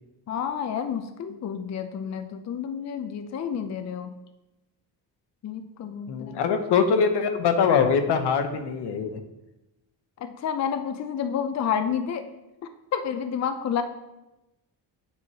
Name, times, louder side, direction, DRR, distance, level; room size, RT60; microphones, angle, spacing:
voice 1, 0.3-4.1 5.4-6.4 10.2-12.3 12.9-13.8, left 8 dB, 45° left, 8 dB, 0.5 m, -30 dB
voice 2, 6.1-9.2, left 6 dB, 75° left, 7 dB, 0.8 m, -23 dB
8.3 x 3.0 x 4.7 m, 0.97 s
cardioid pair, 105°, 40 cm